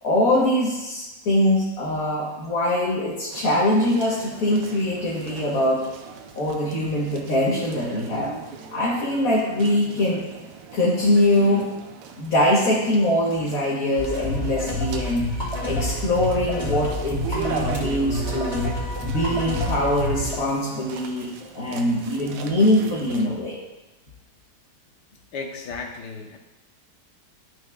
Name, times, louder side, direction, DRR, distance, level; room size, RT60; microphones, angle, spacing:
voice 1, 0.0-5.8 6.3-8.3 8.7-10.2 10.7-11.7 12.2-18.7 19.0-23.6, left 1 dB, 60° left, -5 dB, 1.6 m, -23 dB
sound 1, 3.3-23.3, right 6 dB, 80° right, 1.3 m, -38 dB
sound 2, 14.0-20.3, left 1 dB, 25° left, 2.3 m, -28 dB
voice 2, 25.3-26.4, left 4 dB, 80° left, 3 dB, 1.5 m, -34 dB
12.5 x 6.2 x 2.3 m, 1.1 s
omnidirectional pair, 1.8 m